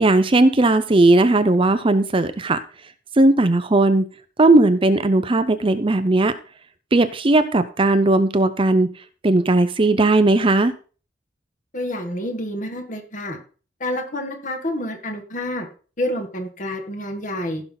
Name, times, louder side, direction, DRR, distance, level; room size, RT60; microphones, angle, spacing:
voice 1, 0.0-2.6 3.2-4.0 4.4-6.3 6.9-8.9 9.2-10.7, right 2 dB, 30° right, 11 dB, 0.6 m, -17 dB
voice 2, 11.7-13.4 13.8-15.7 16.0-17.6, left 1 dB, 45° left, 5 dB, 1.9 m, -28 dB
15.5 x 5.8 x 3.9 m, 0.37 s
head